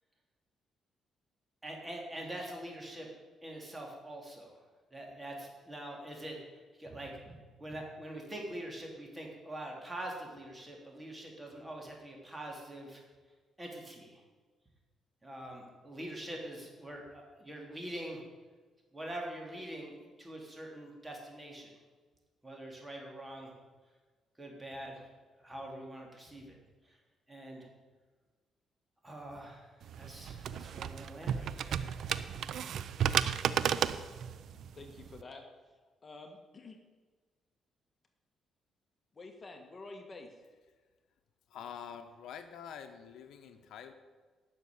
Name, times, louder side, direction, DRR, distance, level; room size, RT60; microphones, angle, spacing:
voice 1, 1.6-3.1 3.4-4.5 4.9-13.0 13.6-14.2 15.2-18.2 18.9-21.7 22.4-23.5 24.4-25.0 25.4-26.6 26.8-27.0 27.3-27.7 29.0-32.0, right 1 dB, 15° right, 0 dB, 3.5 m, -44 dB
sound 1, 29.8-35.2, right 8 dB, 70° right, 0.5 m, -33 dB
voice 2, 34.2-35.7 36.0-36.8 39.1-40.3, left 3 dB, 35° left, 4 dB, 1.6 m, -50 dB
voice 3, 41.5-43.9, left 8 dB, 75° left, 7 dB, 1.0 m, -46 dB
11.5 x 6.8 x 8.6 m, 1.4 s
cardioid pair, 90°, 0 cm